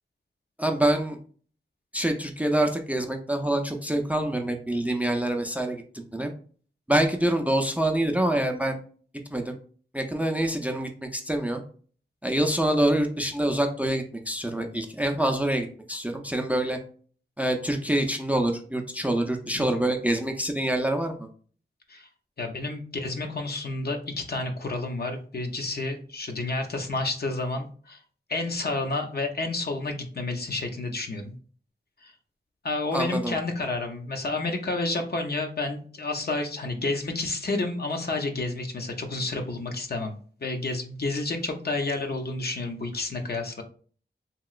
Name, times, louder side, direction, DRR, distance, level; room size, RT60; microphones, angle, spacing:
voice 1, 0.6-1.2 1.9-6.3 6.9-8.8 9.3-9.6 9.9-11.6 12.2-16.8 17.4-21.2 32.9-33.3, right 1 dB, 10° right, 5 dB, 0.4 m, -26 dB
voice 2, 22.4-28.0 28.3-31.4 32.0-32.1 32.6-40.1 40.4-43.6, left 2 dB, 55° left, 3 dB, 0.5 m, -30 dB
2.9 x 2.8 x 2.3 m, 0.44 s
wide cardioid pair, 85°, 20 cm